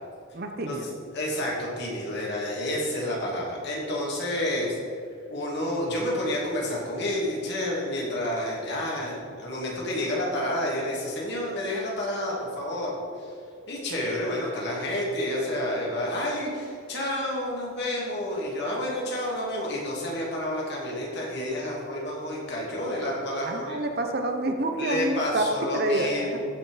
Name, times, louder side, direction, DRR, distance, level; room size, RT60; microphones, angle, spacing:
voice 1, 0.3-0.9 23.4-25.4 25.7-26.4, right 2 dB, 45° right, 5 dB, 0.9 m, -28 dB
voice 2, 1.1-4.8 5.3-13.3 13.7-23.8 24.8-26.4, left 1 dB, 55° left, -4 dB, 2.9 m, -29 dB
15.5 x 5.9 x 5.0 m, 2.4 s
head